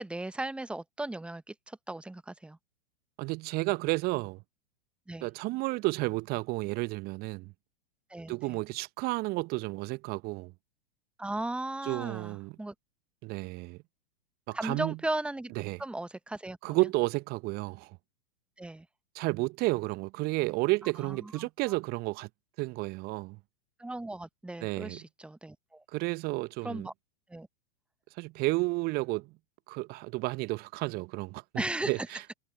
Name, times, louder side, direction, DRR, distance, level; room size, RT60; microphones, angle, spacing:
voice 1, 0.0-2.6 5.1-5.3 8.1-8.6 11.2-12.7 14.5-15.5 15.8-16.9 18.6-18.9 21.0-21.8 23.8-25.8 26.6-26.9 27.3-27.5 31.5-32.1, right 2 dB, 5° right, 1.1 m, -37 dB
voice 2, 3.2-4.4 5.2-7.5 8.3-10.5 11.9-12.5 13.2-13.8 14.5-15.0 15.6-15.8 16.6-17.9 19.1-22.3 22.6-23.4 24.6-25.0 25.9-26.9 28.2-29.3 29.7-31.4 31.9-32.2, right 23 dB, 30° right, 0.8 m, -31 dB
figure-of-eight pair, 100°, 30 cm